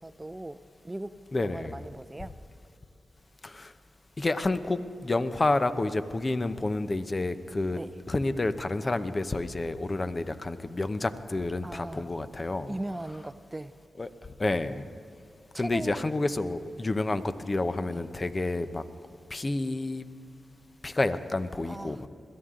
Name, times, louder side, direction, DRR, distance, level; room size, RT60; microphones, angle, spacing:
voice 1, 0.0-0.6 0.8-2.3 7.7-7.9 11.6-12.1 12.7-13.7 15.5-16.1 17.9-18.0 21.6-22.1, right 1 dB, 20° right, 13 dB, 0.6 m, -38 dB
voice 2, 1.3-1.8 3.4-3.7 4.2-7.8 8.1-12.7 14.0-14.1 14.4-14.8 15.5-18.8 19.3-20.0 20.8-22.1, left 2 dB, 35° left, 11 dB, 0.9 m, -29 dB
21.5 x 13.5 x 3.8 m, 2.7 s
cardioid pair, 45°, 0 cm